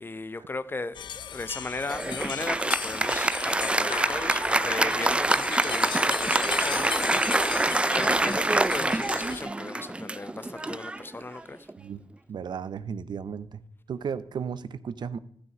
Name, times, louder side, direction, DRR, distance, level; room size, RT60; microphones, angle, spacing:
voice 1, 0.0-6.9 7.4-7.7 7.9-11.7, left 3 dB, 25° left, 0.6 m, -37 dB
sound 1, 0.9-9.4, left 9 dB, 75° left, 0.4 m, -36 dB
Applause, 1.9-11.7, right 2 dB, 15° right, 0.3 m, -26 dB
voice 2, 12.3-13.6 13.9-15.2, right 7 dB, 70° right, 0.6 m, -34 dB
12.5 x 6.1 x 5.9 m
cardioid pair, 80°, 8 cm